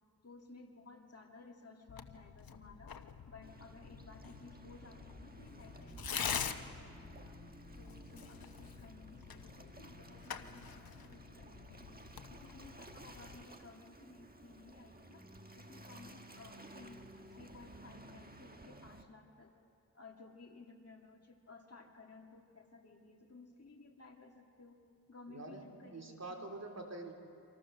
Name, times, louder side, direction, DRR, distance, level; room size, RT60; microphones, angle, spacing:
voice 1, 0.2-7.4 7.8-12.0 12.3-15.2 15.5-19.5 19.9-24.8 25.1-26.5, left 3 dB, 45° left, 1 dB, 2.4 m, -57 dB
Tearing, 1.9-13.4, left 7 dB, 85° left, 1.0 m, -46 dB
Waves surf, 3.4-19.0, right 2 dB, 25° right, 1.4 m, -55 dB
voice 2, 25.3-25.6 25.9-27.1, right 2 dB, 50° right, 2 dB, 3.0 m, -45 dB
28.0 x 25.5 x 6.6 m, 2.5 s
wide cardioid pair, 100°, 35 cm